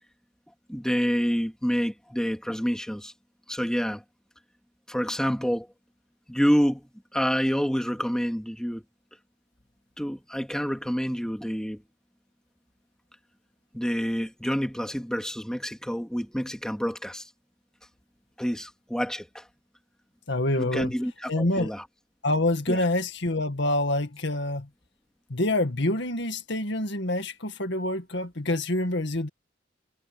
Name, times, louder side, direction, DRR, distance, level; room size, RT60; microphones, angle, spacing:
voice 1, 0.7-3.1 3.5-4.0 4.9-5.7 6.3-8.8 10.0-11.8 13.7-17.3 18.4-19.5 20.6-21.9 22.7-22.8, equal, 5° left, 2.6 m, -28 dB
voice 2, 20.3-20.9 21.3-21.7 22.2-24.7 25.3-29.3, left 1 dB, 65° left, 2.0 m, -26 dB
head